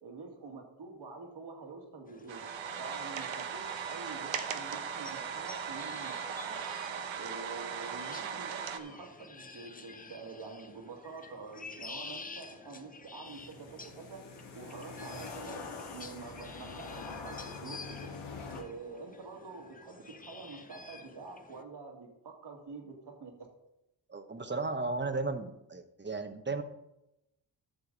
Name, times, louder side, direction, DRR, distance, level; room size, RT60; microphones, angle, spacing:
voice 1, 0.0-2.4 2.8-6.6 7.1-14.2 14.5-15.6 15.9-18.1 18.5-23.3, right 4 dB, 65° right, 2 dB, 2.2 m, -47 dB
sound 1, 2.1-21.6, left 3 dB, 20° left, 0.8 m, -50 dB
sound 2, 2.3-8.8, right 7 dB, 85° right, 1.0 m, -38 dB
sound 3, 13.2-18.6, left 4 dB, 80° left, 1.9 m, -44 dB
voice 2, 24.1-26.6, right 3 dB, 25° right, 8 dB, 1.0 m, -35 dB
11.5 x 6.8 x 4.0 m, 0.87 s
cardioid pair, 85°, 44 cm